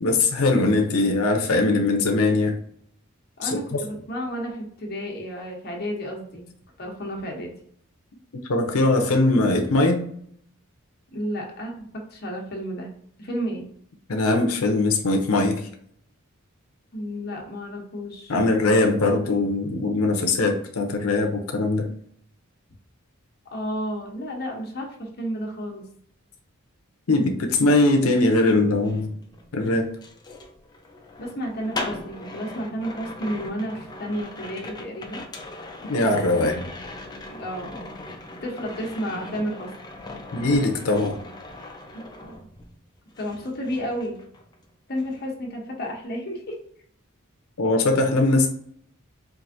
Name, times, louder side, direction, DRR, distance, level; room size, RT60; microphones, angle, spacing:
voice 1, 0.0-2.6 3.4-3.8 8.5-10.0 14.1-15.6 18.3-21.9 27.1-29.1 29.5-29.9 35.8-36.6 40.3-41.2 47.6-48.5, left 2 dB, 80° left, 3 dB, 0.6 m, -21 dB
voice 2, 3.4-6.5 6.8-7.5 11.1-12.9 13.2-13.6 16.9-18.4 23.5-24.9 25.2-25.8 31.2-35.2 36.3-36.5 37.3-38.0 38.4-39.7 41.9-42.4 43.2-44.2 44.9-46.6, equal, 45° left, 0 dB, 1.0 m, -32 dB
sound 1, 28.7-42.8 43.1-44.6 44.9-45.2, left 2 dB, 20° left, 0.4 m, -39 dB
4.6 x 2.5 x 2.6 m, 0.65 s
head